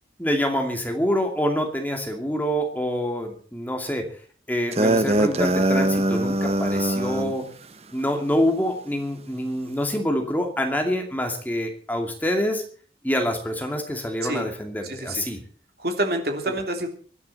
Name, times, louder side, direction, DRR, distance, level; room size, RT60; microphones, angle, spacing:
voice 1, 0.2-4.1 4.5-7.5 7.9-12.6 13.0-15.4, equal, 10° left, 3 dB, 2.5 m, -26 dB
sound 1, 4.7-7.3, right 1 dB, 35° right, 1.1 m, -22 dB
voice 2, 14.8-15.2 15.8-16.9, right 1 dB, 55° right, 4 dB, 3.1 m, -27 dB
24.5 x 11.0 x 4.2 m, 0.43 s
head